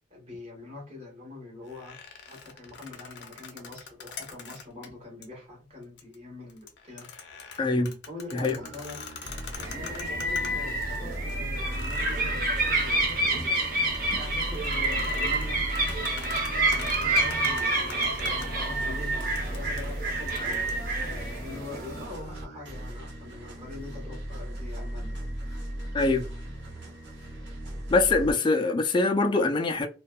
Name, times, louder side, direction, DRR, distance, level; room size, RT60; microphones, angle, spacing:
voice 1, 0.0-1.9 2.3-7.1 8.1-9.0 9.7-13.6 13.8-16.4 16.6-20.6 21.0-25.2, left 2 dB, 35° right, 1.3 m, -43 dB
sound 1, 1.6-4.9 5.2-5.3 5.8-6.2 6.5-11.0 11.3-11.4 11.8-18.5 19.2-20.7, left 5 dB, 80° left, 0.5 m, -44 dB
voice 2, 7.6-8.0 8.3-8.6 25.9-26.3 27.9-29.9, left 3 dB, 25° left, 0.3 m, -24 dB
sound 2, 8.5-28.3, right 1 dB, 90° right, 1.0 m, -37 dB
sound 3, 9.6-22.0, right 2 dB, 55° right, 0.9 m, -28 dB
2.6 x 2.2 x 2.2 m
head